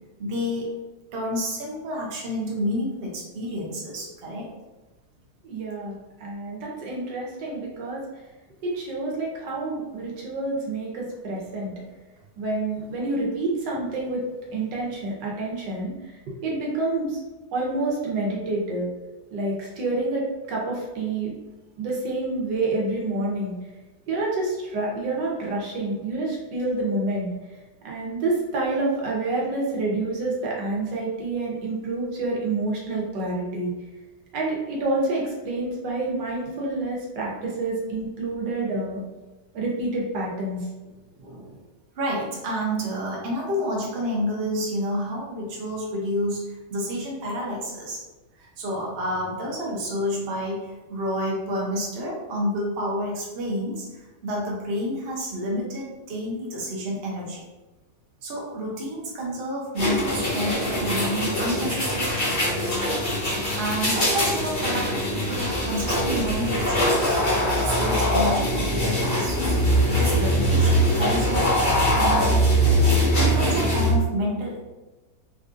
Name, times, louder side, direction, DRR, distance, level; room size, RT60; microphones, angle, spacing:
voice 1, 0.2-0.7 1.1-4.5 37.2-37.3 41.1-41.6 41.9-48.0 48.3-57.4 58.2-62.8 63.5-67.2 67.5-69.6 69.9-71.5 71.9-72.5 72.9-74.6, equal, 50° right, -3 dB, 0.8 m, -29 dB
voice 2, 5.4-5.9 6.2-8.0 8.6-11.7 12.4-14.2 14.5-15.9 16.4-17.2 17.5-18.9 19.3-21.3 21.8-23.5 24.1-27.3 27.8-33.7 34.3-39.0 39.5-40.6, right 2 dB, 80° right, -3 dB, 1.5 m, -28 dB
sound 1, 59.8-73.9, equal, 40° left, 1.1 m, -22 dB
3.7 x 2.4 x 2.5 m, 1.1 s
omnidirectional pair, 1.8 m